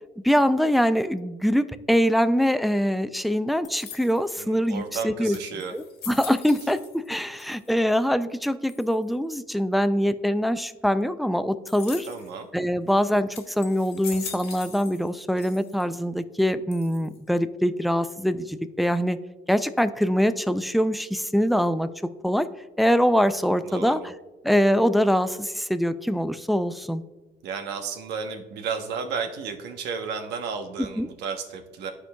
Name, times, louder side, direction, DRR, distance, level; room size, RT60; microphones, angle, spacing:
voice 1, 0.2-5.4 5.7-12.1 12.5-19.2 19.5-21.9 22.2-22.5 22.8-24.1 24.4-27.0 31.0-31.1, equal, ahead, 11 dB, 0.3 m, -23 dB
sound 1, 3.6-4.4 5.0-5.1 5.3-7.1 7.3-8.0 8.7-9.1 11.7-12.3 12.9-13.0 13.3-15.1 15.4-16.0 16.7-17.3, left 7 dB, 70° left, 1.4 m, -41 dB
voice 2, 4.4-5.7 12.0-12.5 23.6-24.1 27.4-31.9, right 5 dB, 80° right, 6 dB, 1.0 m, -33 dB
13.0 x 4.5 x 2.2 m, 1.2 s
cardioid pair, 110°, 17 cm